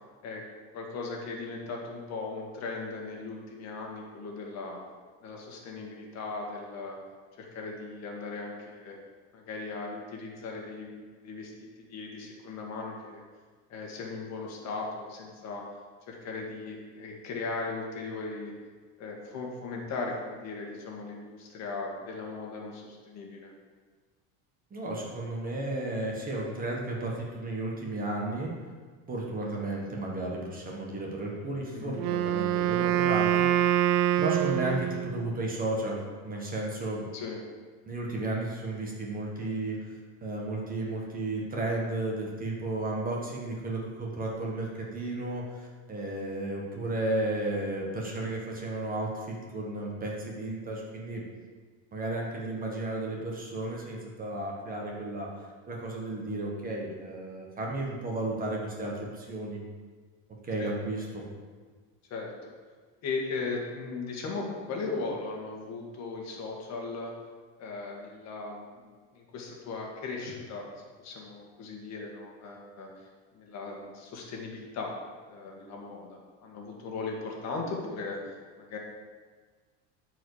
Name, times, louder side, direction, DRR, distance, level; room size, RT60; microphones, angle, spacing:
voice 1, 0.7-4.8 5.2-7.0 7.4-9.0 9.3-10.9 11.2-11.5 11.8-13.2 13.7-15.6 16.1-18.5 19.0-23.5 31.7-31.9 37.1-37.4 60.6-60.7 62.1-62.5 63.0-67.1 67.6-70.7 71.0-73.1 73.3-74.9 75.3-78.8, left 3 dB, 45° left, -1 dB, 1.8 m, -38 dB
voice 2, 24.7-28.5 29.1-33.5 34.2-37.0 37.9-39.9 40.2-51.2 51.9-59.6 60.4-61.3, right 2 dB, 20° right, -2 dB, 1.5 m, -33 dB
Wind instrument woodwind instrument, 32.0-35.3, right 11 dB, 70° right, 0.5 m, -25 dB
13.0 x 4.8 x 4.9 m, 1.5 s
cardioid pair, 150°, 38 cm